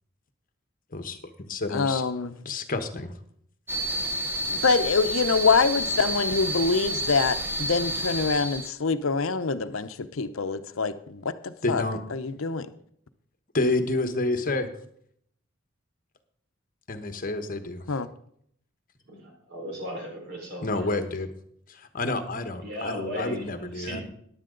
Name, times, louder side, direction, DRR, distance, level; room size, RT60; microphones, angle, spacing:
voice 1, 0.9-2.0 2.4-3.1 11.6-12.0 13.5-14.7 16.9-17.8 20.6-21.3 21.9-24.0, left 2 dB, 45° left, 8 dB, 1.2 m, -29 dB
voice 2, 1.7-2.4 4.5-11.8 12.1-12.7 17.9-18.1, left 4 dB, 75° left, 11 dB, 0.7 m, -25 dB
sound 1, 3.7-8.7, right 1 dB, 10° right, 0.8 m, -30 dB
voice 3, 19.2-20.9 22.6-24.0, equal, 55° right, 0 dB, 4.4 m, -36 dB
14.5 x 10.5 x 3.9 m, 0.67 s
head